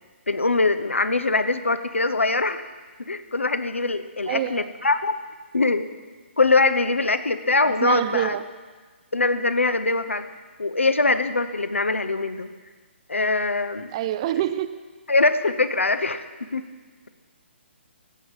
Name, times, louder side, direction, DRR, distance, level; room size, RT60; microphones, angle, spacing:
voice 1, 0.3-2.6 3.1-5.1 5.5-5.9 6.4-8.4 9.1-10.2 10.6-12.5 13.1-13.9 15.1-16.7, left 3 dB, 80° left, 11 dB, 0.8 m, -22 dB
voice 2, 4.3-4.6 7.6-8.4 13.9-14.7, right 12 dB, 30° right, 12 dB, 0.4 m, -26 dB
16.0 x 6.3 x 5.4 m, 1.4 s
figure-of-eight pair, 135°, 7 cm